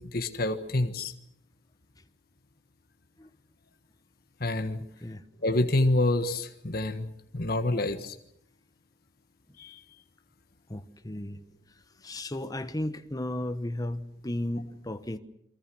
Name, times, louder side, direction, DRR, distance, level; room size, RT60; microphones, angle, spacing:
voice 1, 0.1-1.1 4.4-4.8 5.4-8.1 9.6-9.7, left 2 dB, 50° left, 1.4 m, -27 dB
voice 2, 10.7-11.4 12.0-15.2, left 1 dB, 20° left, 1.1 m, -34 dB
29.0 x 23.5 x 6.2 m
head